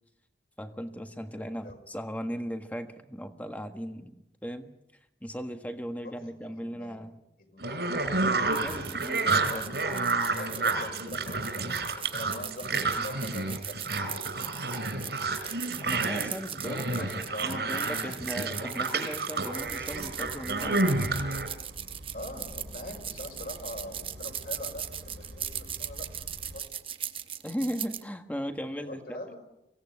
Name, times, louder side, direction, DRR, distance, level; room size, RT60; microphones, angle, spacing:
voice 1, 0.6-4.7 5.2-7.2 8.6-9.6 15.8-17.1 17.4-21.1 27.4-29.2, equal, 10° left, 7 dB, 1.5 m, -37 dB
voice 2, 6.0-8.1 9.3-15.3 16.6-18.2 22.1-26.1 26.4-26.7 28.9-29.3, left 1 dB, 55° left, 3 dB, 5.3 m, -43 dB
sound 1, 7.6-21.5, right 3 dB, 70° right, 3.9 m, -30 dB
sound 2, 8.5-28.0, right 10 dB, 30° right, 0.9 m, -39 dB
sound 3, 19.6-26.6, equal, 85° right, 5.5 m, -47 dB
24.5 x 17.5 x 9.8 m, 0.90 s
head